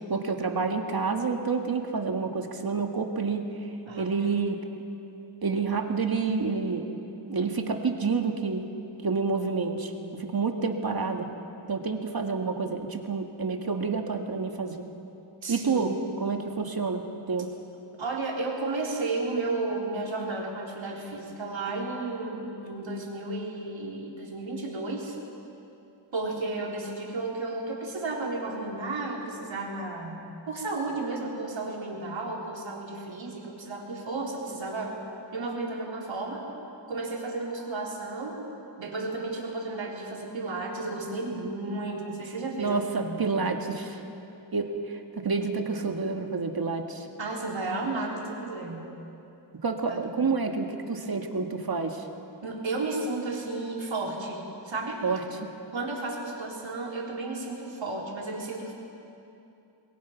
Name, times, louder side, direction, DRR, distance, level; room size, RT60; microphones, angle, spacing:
voice 1, 0.1-3.4 4.0-4.6 5.4-6.9 7.3-8.6 9.0-9.9 10.2-11.3 11.7-14.8 15.5-15.9 16.2-17.0 17.3-17.5 42.6-44.0 44.5-47.1 49.6-52.0 55.0-55.2, right 4 dB, 50° right, 4 dB, 2.0 m, -28 dB
voice 2, 3.9-4.3 15.4-16.1 18.0-25.2 26.1-30.2 30.5-35.0 35.3-36.4 36.9-38.4 38.8-43.2 47.2-48.9 49.9-50.1 52.4-55.0 55.7-58.7, right 2 dB, 70° right, -2 dB, 4.1 m, -33 dB
27.5 x 21.0 x 5.9 m, 2.8 s
wide cardioid pair, 110°, 47 cm